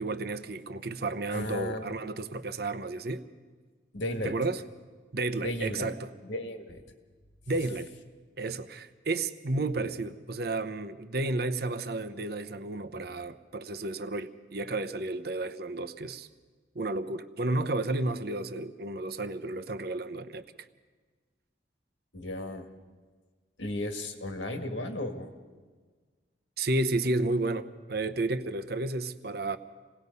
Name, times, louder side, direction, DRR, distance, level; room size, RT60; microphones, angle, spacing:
voice 1, 0.0-3.2 4.2-4.6 5.1-6.1 7.5-7.9 8.4-16.3 16.7-20.4 26.6-29.6, right 2 dB, 55° right, 0.9 m, -32 dB
voice 2, 1.3-1.9 3.9-4.3 5.4-6.0 6.2-6.8 22.1-22.7 23.6-25.3, left 1 dB, 85° left, 1.9 m, -35 dB
27.5 x 19.0 x 5.4 m
head